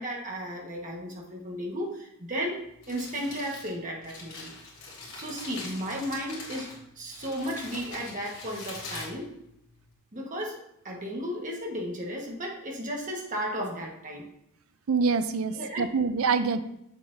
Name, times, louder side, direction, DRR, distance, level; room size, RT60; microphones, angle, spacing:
voice 1, 0.0-4.5 5.1-6.7 7.0-9.3 10.1-14.3 15.5-15.9, equal, 35° right, -1 dB, 1.4 m, -34 dB
Crumpling crinkling, 2.6-9.9, left 3 dB, 65° left, 3.1 m, -43 dB
voice 2, 14.9-16.6, right 5 dB, 65° right, 12 dB, 0.5 m, -25 dB
7.6 x 7.3 x 2.7 m, 0.78 s
head